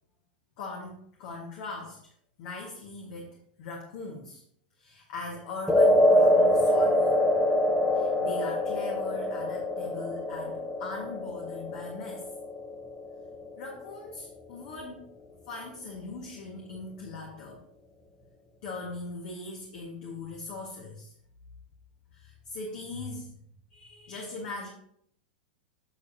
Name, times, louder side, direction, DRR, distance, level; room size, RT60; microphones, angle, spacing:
voice 1, 0.6-2.0 2.4-4.4 4.8-7.2 7.9-12.3 13.5-15.0 15.5-17.6 18.6-21.1 22.1-23.3 23.7-24.7, left 3 dB, 55° left, -1 dB, 1.6 m, -40 dB
sound 1, 5.7-14.0, left 1 dB, 5° left, 1.0 m, -25 dB
8.2 x 6.7 x 2.8 m, 0.66 s
hypercardioid pair, 105°, 5 cm